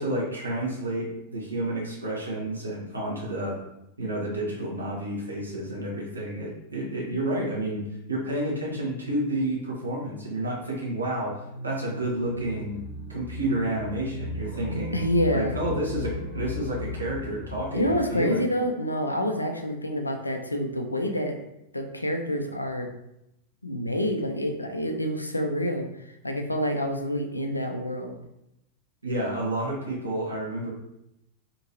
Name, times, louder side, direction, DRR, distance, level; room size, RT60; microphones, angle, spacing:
voice 1, 0.0-3.6 4.0-7.8 8.1-12.8 13.1-15.0 15.3-18.5 29.0-30.7, right 1 dB, 80° right, -4 dB, 0.9 m, -30 dB
sound 1, 10.8-18.1, left 2 dB, 60° left, 0.8 m, -36 dB
voice 2, 14.9-15.6 17.7-21.4 21.7-22.9 23.6-28.2, equal, 85° left, 4 dB, 0.4 m, -27 dB
2.8 x 2.7 x 2.9 m, 0.84 s
figure-of-eight pair, 90°, 0 cm